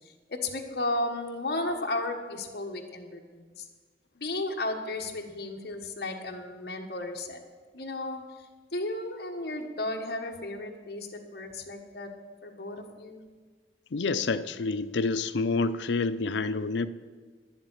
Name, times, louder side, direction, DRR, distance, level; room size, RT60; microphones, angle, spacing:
voice 1, 0.4-3.5 4.1-7.4 7.7-8.2 8.7-12.1 12.4-13.2, left 2 dB, 60° left, 1 dB, 1.4 m, -34 dB
voice 2, 13.9-16.9, left 3 dB, 80° left, 13 dB, 0.6 m, -28 dB
11.0 x 7.3 x 9.7 m, 1.5 s
head